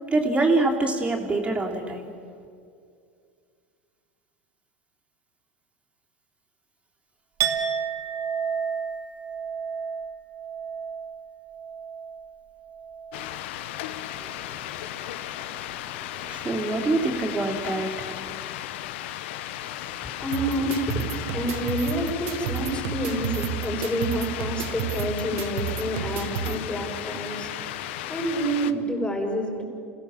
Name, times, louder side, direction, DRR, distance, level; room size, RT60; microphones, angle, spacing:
voice 1, 0.1-2.1 14.2-15.9 16.2-18.3, right 2 dB, 20° right, 0 dB, 3.6 m, -26 dB
Chink clink, 7.4-13.3 13.6-14.0, right 7 dB, 45° right, 2.3 m, -32 dB
sound 1, 13.1-28.7, left 13 dB, 70° left, 1.0 m, -35 dB
voice 2, 19.6-29.6, equal, 20° left, 1 dB, 6.9 m, -29 dB
sound 2, 20.3-26.5, right 11 dB, 70° right, 1.2 m, -32 dB
28.0 x 17.5 x 7.4 m, 2.3 s
hypercardioid pair, 85°, 6 cm